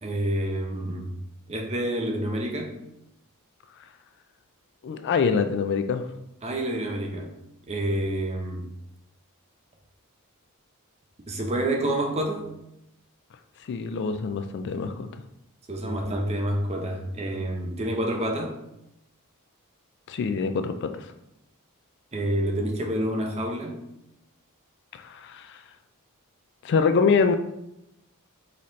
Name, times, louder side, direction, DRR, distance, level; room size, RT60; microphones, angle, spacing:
voice 1, 0.0-1.1 1.5-2.7 6.4-7.3 7.7-8.6 11.3-12.5 15.7-18.5 22.1-23.8, right 1 dB, 30° right, 1 dB, 0.6 m, -28 dB
voice 2, 4.8-6.0 13.7-15.1 20.1-21.1 24.9-25.6 26.6-27.3, left 5 dB, 50° left, 8 dB, 0.3 m, -25 dB
4.1 x 4.1 x 3.1 m, 0.84 s
head